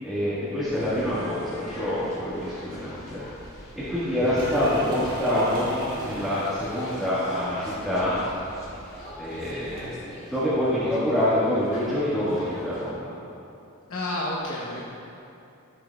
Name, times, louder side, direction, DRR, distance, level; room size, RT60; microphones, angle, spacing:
voice 1, 0.0-3.2 3.7-8.2 9.2-12.9, left 1 dB, ahead, -14 dB, 1.8 m, -26 dB
sound 1, 0.7-12.9, left 1 dB, 45° left, 2.1 m, -44 dB
sound 2, 4.3-10.1, equal, 40° right, 1.9 m, -41 dB
voice 2, 13.9-14.9, left 1 dB, 75° left, -6 dB, 1.0 m, -30 dB
14.5 x 6.8 x 2.4 m, 2.7 s
head